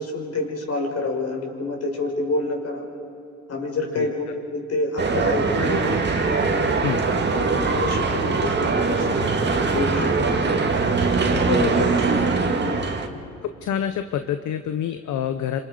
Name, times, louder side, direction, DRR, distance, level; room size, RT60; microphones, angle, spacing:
voice 1, 0.0-2.8 3.5-4.2 4.5-6.0 6.5-6.8 7.1-10.1 12.4-13.0, left 2 dB, 55° left, 1 dB, 5.5 m, -28 dB
sound 1, 5.0-13.1, right 4 dB, 35° right, 2.1 m, -22 dB
voice 2, 11.3-12.3 13.6-15.6, left 9 dB, 75° left, 9 dB, 1.0 m, -27 dB
27.5 x 27.0 x 5.1 m, 2.7 s
cardioid pair, 90°, 30 cm